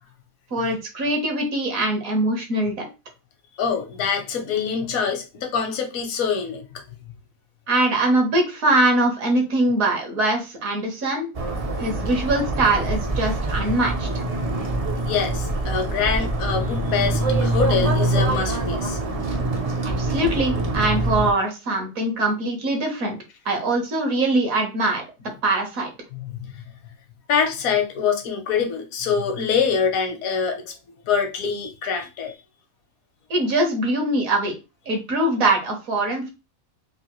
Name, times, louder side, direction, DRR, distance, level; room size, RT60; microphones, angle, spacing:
voice 1, 0.5-2.9 7.7-11.3 11.8-14.1 19.8-23.2 23.4-25.0 25.4-25.9 33.3-34.6 34.9-36.3, right 2 dB, 70° right, 1.6 m, -22 dB
voice 2, 3.6-6.7 11.9-12.0 15.0-19.0 26.1-26.5 27.3-30.7 31.1-32.3, left 6 dB, 75° left, 1.3 m, -25 dB
sound 1, 11.3-21.3, right 2 dB, 45° right, 0.4 m, -24 dB
3.9 x 2.6 x 3.0 m
omnidirectional pair, 1.5 m